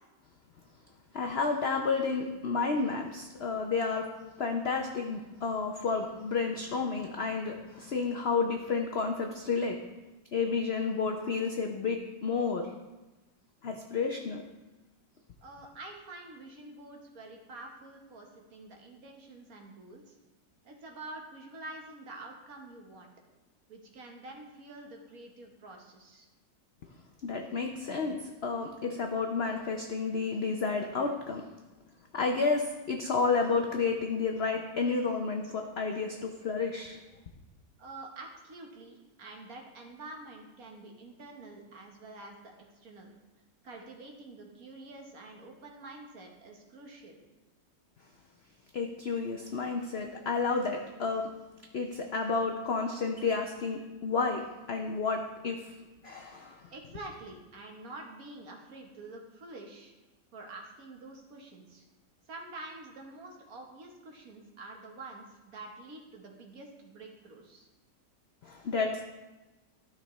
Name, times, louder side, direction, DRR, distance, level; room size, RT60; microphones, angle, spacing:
voice 1, 1.1-9.8 10.3-12.7 13.6-14.4 27.2-31.5 32.1-37.0 48.7-51.3 51.7-55.7 56.0-56.7 68.4-69.0, left 4 dB, 65° left, 3 dB, 0.6 m, -31 dB
voice 2, 15.4-20.2 20.6-23.1 23.7-26.3 37.8-43.1 43.6-47.2 56.7-59.9 60.3-61.9 62.3-67.7, right 2 dB, 60° right, 1 dB, 1.5 m, -47 dB
12.5 x 5.8 x 3.1 m, 1.1 s
omnidirectional pair, 1.8 m